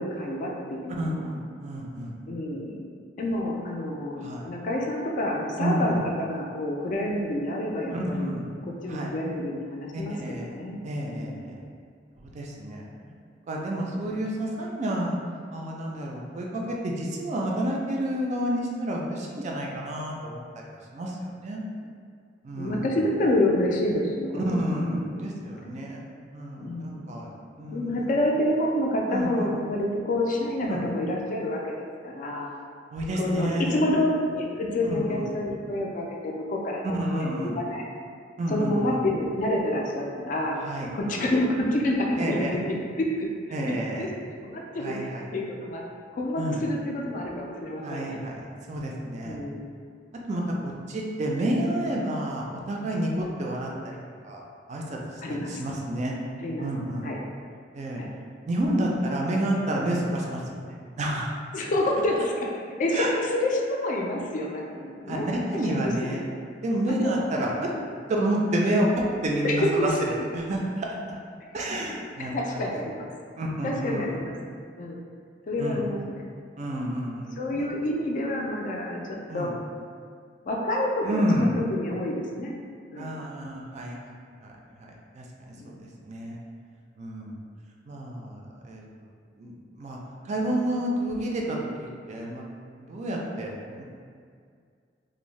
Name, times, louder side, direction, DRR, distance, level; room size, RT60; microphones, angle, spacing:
voice 1, 0.0-1.3 2.3-2.9 3.2-8.3 8.7-10.8 11.2-11.6 22.5-25.3 26.6-27.2 27.6-31.8 32.0-32.5 33.2-37.8 38.5-40.6 40.9-43.3 43.6-44.1 44.4-45.0 45.3-45.8 46.1-48.2 49.2-49.7 55.2-55.6 56.4-56.7 57.0-57.2 58.0-58.1 61.5-65.3 65.6-65.7 66.0-66.2 66.9-67.2 67.7-67.9 69.4-70.2 72.2-73.1 73.6-74.4 74.8-75.0 75.5-76.2 77.0-79.6 80.5-82.6 82.9-83.2 85.5-85.7, left 1 dB, 45° left, -1 dB, 0.3 m, -28 dB
voice 2, 1.0-2.1 4.2-4.5 5.6-6.0 7.9-8.5 8.9-9.1 9.9-10.5 10.8-11.5 12.2-12.9 13.5-15.2 15.5-20.4 20.9-21.6 22.4-22.9 24.3-26.0 26.3-28.1 29.1-29.5 30.7-30.8 32.9-33.9 34.8-35.3 36.9-37.5 38.4-39.0 40.6-40.9 42.2-42.6 43.5-44.1 44.8-45.2 46.4-46.7 47.8-49.4 50.3-54.0 54.2-54.4 54.7-55.0 55.3-56.2 56.6-57.1 57.7-58.0 58.5-61.3 61.6-61.7 62.9-63.1 65.1-66.2 66.6-67.7 68.1-69.9 70.3-71.0 71.5-72.8 73.4-74.2 75.6-75.8 76.6-77.6 79.3-79.5 81.0-81.6 82.9-84.2 84.4-84.5 84.8-85.8 86.0-86.4 87.0-87.4 87.9-88.8 89.4-90.0 90.2-92.5 92.9-93.8, right 1 dB, 40° right, -2 dB, 0.3 m, -29 dB
2.6 x 2.1 x 3.1 m, 2.1 s
head